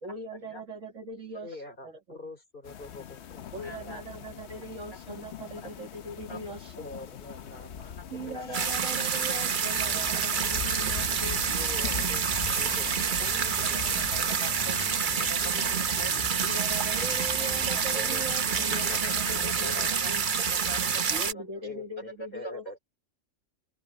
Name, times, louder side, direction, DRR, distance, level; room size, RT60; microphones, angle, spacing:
voice 1, 0.0-1.6 1.8-2.2 3.5-6.8 8.1-11.4 13.2-14.1 16.4-20.2 21.1-22.6, right 2 dB, 75° right, 2.8 m, -40 dB
voice 2, 1.4-4.2 6.8-8.9 11.4-14.7 15.2-15.8 17.4-17.5 17.9-18.3 18.5-20.6 21.6-22.8, left 2 dB, 40° left, 3.7 m, -46 dB
sound 1, 2.6-19.9, left 8 dB, 65° left, 1.0 m, -42 dB
voice 3, 3.6-4.0 5.6-5.7 6.3-6.4 8.0-8.1 8.3-8.7 9.3-9.4 13.7-13.8 14.1-15.7 16.0-16.1 16.8-16.9 17.7-17.8 19.6-20.1 20.5-21.4, equal, 20° left, 3.0 m, -44 dB
sound 2, 8.5-21.3, right 6 dB, 45° right, 0.9 m, -28 dB
sound 3, 9.8-21.0, right 1 dB, 25° right, 2.6 m, -46 dB
open air
omnidirectional pair, 1.3 m